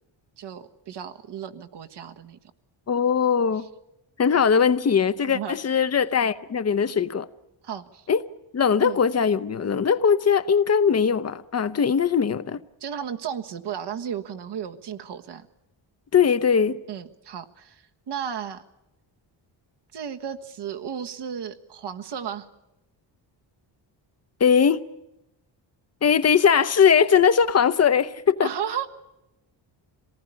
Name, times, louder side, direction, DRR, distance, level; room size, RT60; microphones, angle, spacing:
voice 1, 0.4-2.4 5.2-5.6 7.6-8.0 8.8-9.0 12.8-15.5 16.9-18.6 19.9-22.5 28.4-28.9, right 8 dB, 60° right, 1.6 m, -34 dB
voice 2, 2.9-3.6 4.2-7.3 8.1-8.2 8.5-12.6 16.1-16.8 24.4-24.8 26.0-28.5, left 7 dB, 35° left, 0.8 m, -20 dB
26.5 x 19.0 x 9.0 m
cardioid pair, 145°, 46 cm